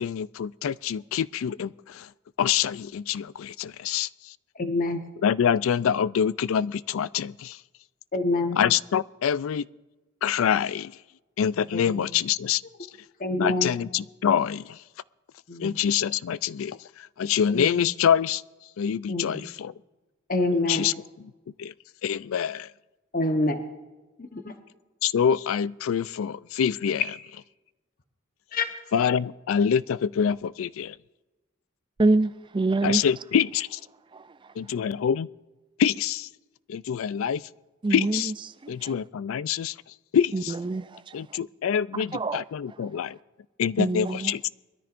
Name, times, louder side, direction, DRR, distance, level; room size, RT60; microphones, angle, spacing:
voice 1, 0.0-2.1 2.4-4.3 5.2-7.6 8.6-9.7 10.2-10.9 11.4-12.6 13.4-14.8 15.6-18.4 18.8-19.7 20.7-21.3 21.6-21.7 22.0-22.7 25.0-27.1 28.9-31.0 32.8-33.8 34.6-35.3 35.8-36.3 36.7-37.4 37.9-38.3 38.7-39.7 40.1-40.5 41.1-43.2 43.6-44.5, left 8 dB, 75° left, 0.3 m, -26 dB
voice 2, 4.6-5.0 8.1-8.6 11.7-12.0 13.2-13.7 15.5-15.8 17.5-17.7 19.1-19.4 20.3-20.9 23.1-23.6 24.3-24.4 28.5-28.7, left 2 dB, 40° left, 1.0 m, -26 dB
voice 3, 32.0-33.0 34.1-34.2 37.8-38.3 38.6-38.9 40.3-41.1 42.1-42.4 43.8-44.3, right 2 dB, 25° right, 0.4 m, -25 dB
22.5 x 13.5 x 2.5 m
head